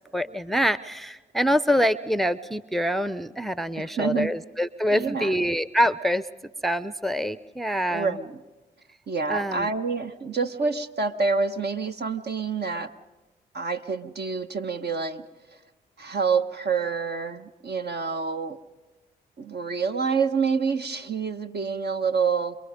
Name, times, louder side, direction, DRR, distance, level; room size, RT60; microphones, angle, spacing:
voice 1, 0.1-6.3 6.6-8.2 9.3-9.7, equal, ahead, 15 dB, 0.7 m, -25 dB
voice 2, 3.7-4.3 4.9-5.4 7.9-8.4 9.1-12.9 13.5-15.2 16.0-18.6 19.4-22.6, right 5 dB, 55° right, 7 dB, 1.3 m, -27 dB
28.0 x 22.5 x 5.2 m, 1.1 s
hypercardioid pair, 40°, 21 cm